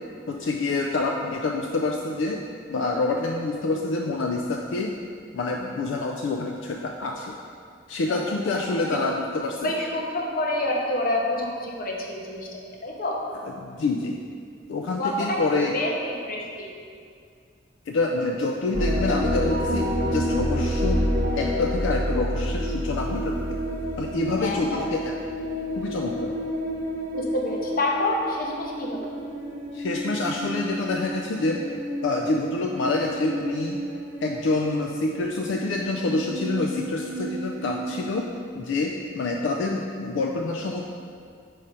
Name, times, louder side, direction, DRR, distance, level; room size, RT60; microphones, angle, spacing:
voice 1, 0.3-2.4 2.7-4.9 5.3-7.3 7.9-9.7 13.6-14.2 14.7-15.7 17.9-21.0 21.4-23.6 24.0-25.1 25.8-26.3 29.7-31.6 32.0-33.8 34.2-38.3 38.5-40.9, left 3 dB, 75° left, 1 dB, 0.4 m, -27 dB
voice 2, 8.1-9.0 9.6-13.2 15.0-15.5 15.7-15.9 16.3-16.7 24.4-24.8 27.1-29.1, left 1 dB, 50° left, -1 dB, 0.8 m, -28 dB
sound 1, 18.7-38.1, equal, 45° right, 0.7 m, -29 dB
4.8 x 4.3 x 5.1 m, 2.3 s
head